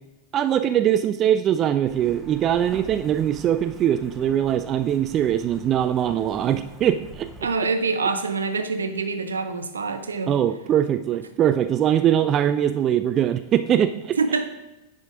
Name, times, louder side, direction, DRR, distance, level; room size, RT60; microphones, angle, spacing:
voice 1, 0.3-7.3 10.3-14.2, right 10 dB, 30° right, 10 dB, 0.3 m, -22 dB
Truck, 1.9-7.5, right 2 dB, 10° right, 1.1 m, -44 dB
voice 2, 7.4-10.3 12.2-12.3 14.2-14.5, right 4 dB, 70° right, 9 dB, 0.6 m, -25 dB
9.5 x 5.1 x 3.7 m, 1.0 s
figure-of-eight pair, 90°, 0 cm